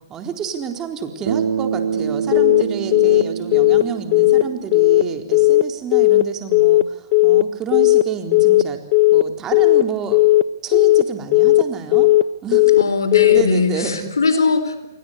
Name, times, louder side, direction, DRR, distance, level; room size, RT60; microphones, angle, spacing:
voice 1, 0.1-8.8 9.1-10.2 10.6-12.1 12.4-12.7 13.3-14.1, right 6 dB, 20° right, 5 dB, 4.0 m, -29 dB
Bass guitar, 1.3-5.6, right 7 dB, 70° right, 1.9 m, -26 dB
Telephone, 2.3-2.6 2.9-3.2 3.5-3.8 4.1-4.4 4.7-5.0 5.3-5.6 5.9-6.2 6.5-6.8 7.1-7.4 7.7-8.0 8.3-8.6 8.9-9.2 9.5-9.8 10.1-10.4 10.7-11.0 11.3-11.6 11.9-12.2 12.5-12.8 13.1-13.4, left 18 dB, 35° left, 0.9 m, -13 dB
voice 2, 12.8-14.9, left 4 dB, 85° left, 10 dB, 4.4 m, -20 dB
29.5 x 23.0 x 8.3 m, 0.96 s
hypercardioid pair, 130°, 2 cm